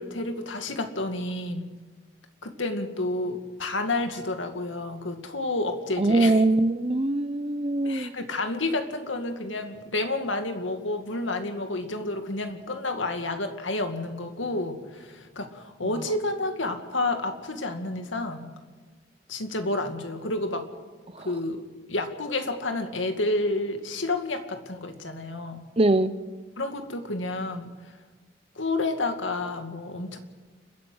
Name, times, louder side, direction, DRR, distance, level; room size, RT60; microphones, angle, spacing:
voice 1, 0.0-1.7 2.4-6.4 7.8-18.5 19.3-20.7 21.2-21.6 21.9-25.6 26.6-27.7 28.6-30.2, left 2 dB, 85° left, 6 dB, 2.2 m, -30 dB
voice 2, 6.0-8.1 21.1-21.3 25.8-26.1, right 2 dB, 30° right, 14 dB, 0.7 m, -22 dB
30.0 x 10.5 x 8.0 m, 1.3 s
head